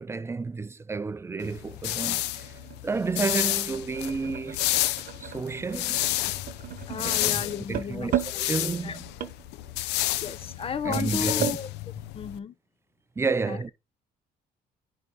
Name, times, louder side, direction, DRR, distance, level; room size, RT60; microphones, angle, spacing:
voice 1, 0.0-2.5 2.8-4.7 5.2-6.1 7.0-9.0 10.8-11.6 13.2-13.7, right 4 dB, 15° right, 0.4 m, -31 dB
sound 1, 1.4-12.4, left 16 dB, 90° left, 0.6 m, -30 dB
sound 2, 1.9-11.6, right 10 dB, 60° right, 1.0 m, -36 dB
voice 2, 6.9-8.5 8.8-9.0 10.2-11.7 12.1-12.5 13.4-13.6, left 7 dB, 35° left, 0.8 m, -34 dB
10.5 x 3.8 x 3.7 m
cardioid pair, 110°, 17 cm